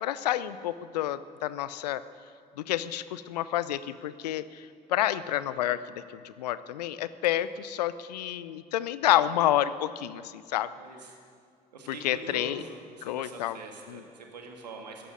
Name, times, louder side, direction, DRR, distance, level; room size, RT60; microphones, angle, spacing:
voice 1, 0.0-2.0 2.6-5.8 6.1-10.7 11.9-12.6 13.0-13.6 13.9-14.0, left 13 dB, 75° left, 16 dB, 0.6 m, -29 dB
voice 2, 10.7-11.2 11.7-15.1, right 3 dB, 85° right, 2 dB, 1.9 m, -44 dB
14.5 x 10.5 x 9.2 m, 2.2 s
figure-of-eight pair, 50°, 21 cm